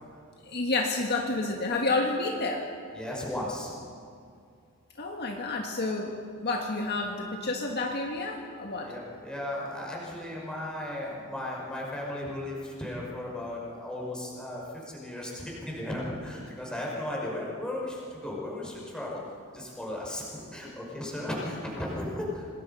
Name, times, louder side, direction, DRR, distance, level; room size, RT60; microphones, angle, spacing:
voice 1, 0.4-2.7 5.0-6.1 6.4-8.9, left 2 dB, 50° left, 1 dB, 1.7 m, -29 dB
voice 2, 2.9-3.7 8.8-19.2 19.5-22.5, left 1 dB, 5° left, -4 dB, 5.6 m, -35 dB
26.5 x 20.0 x 5.6 m, 2.3 s
head